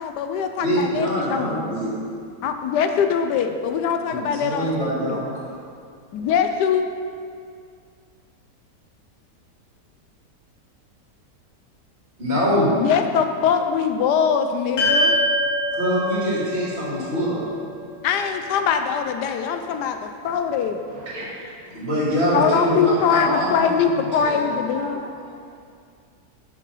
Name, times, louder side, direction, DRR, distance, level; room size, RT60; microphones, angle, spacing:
voice 1, 0.0-1.6 2.4-5.2 6.1-6.8 12.8-15.2 18.0-20.8 22.3-25.0, left 7 dB, 75° left, 7 dB, 1.1 m, -22 dB
voice 2, 0.6-1.9 4.0-5.5 12.2-12.8 15.8-17.4 21.7-24.4, equal, 35° right, -7 dB, 2.6 m, -24 dB
sound 1, 14.8-19.2, equal, 60° left, 2.6 m, -25 dB
voice 3, 20.9-21.5 21.8-21.9 22.6-25.4, right 1 dB, 60° right, -5 dB, 2.1 m, -33 dB
7.6 x 6.3 x 5.6 m, 2.2 s
omnidirectional pair, 1.8 m